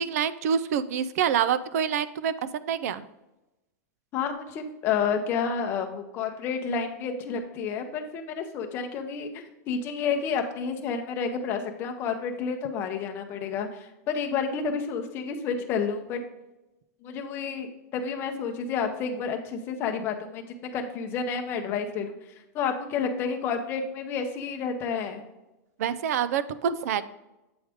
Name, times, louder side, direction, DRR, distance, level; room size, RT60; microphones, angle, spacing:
voice 1, 0.0-3.0 25.8-27.0, right 8 dB, 65° right, 16 dB, 0.4 m, -26 dB
voice 2, 4.1-16.2 17.0-20.4 20.7-22.1 22.5-25.2, left 6 dB, 25° left, 5 dB, 0.7 m, -30 dB
7.9 x 4.8 x 3.5 m, 0.98 s
supercardioid pair, 175°, 9 cm